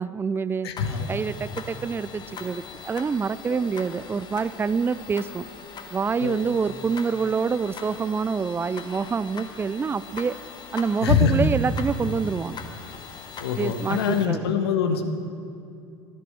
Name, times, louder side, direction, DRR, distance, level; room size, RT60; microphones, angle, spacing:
voice 1, 0.0-0.7 1.1-5.5 5.9-10.4 10.7-12.6 13.6-14.5, right 5 dB, 15° right, 18 dB, 0.4 m, -26 dB
voice 2, 0.6-1.1 3.5-3.6 6.2-6.4 11.0-11.3 13.4-15.0, left 6 dB, 70° left, 7 dB, 1.3 m, -24 dB
sound 1, 0.8-14.3, left 5 dB, 30° left, 1.3 m, -41 dB
12.0 x 11.0 x 8.0 m, 2.6 s
figure-of-eight pair, 70°, 14 cm